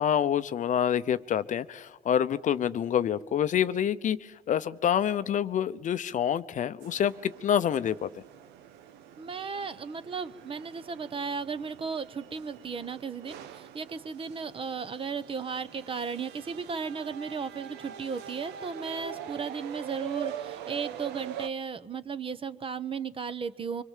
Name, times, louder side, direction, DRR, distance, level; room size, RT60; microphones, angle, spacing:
voice 1, 0.0-8.1, left 9 dB, 50° left, 0.7 m, -27 dB
sound 1, 6.8-21.5, right 9 dB, 85° right, 1.1 m, -43 dB
voice 2, 9.2-23.8, right 5 dB, 30° right, 0.9 m, -35 dB
25.0 x 25.0 x 7.4 m
cardioid pair, 110°, 17 cm